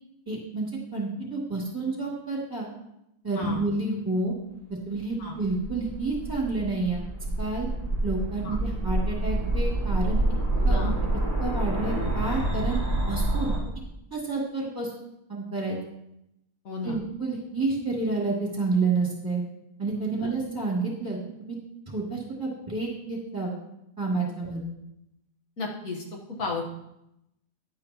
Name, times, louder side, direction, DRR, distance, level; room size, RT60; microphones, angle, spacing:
voice 1, 0.3-2.7 3.2-4.3 4.9-7.0 7.4-7.7 8.0-10.2 10.6-10.9 11.4-12.8 13.1-13.5 14.1-14.9 15.3-15.8 16.8-19.4 19.8-21.6 21.9-23.5 24.0-24.6, right 3 dB, 15° right, -4 dB, 2.6 m, -29 dB
sound 1, 5.2-13.6, right 1 dB, 50° left, 3.8 m, -27 dB
voice 2, 10.5-11.0 13.7-13.8 16.7-17.0 20.2-20.3 24.4-24.5 25.6-26.0 26.4-26.6, left 4 dB, 75° left, -1 dB, 1.7 m, -34 dB
10.5 x 8.9 x 2.9 m, 0.84 s
omnidirectional pair, 1.5 m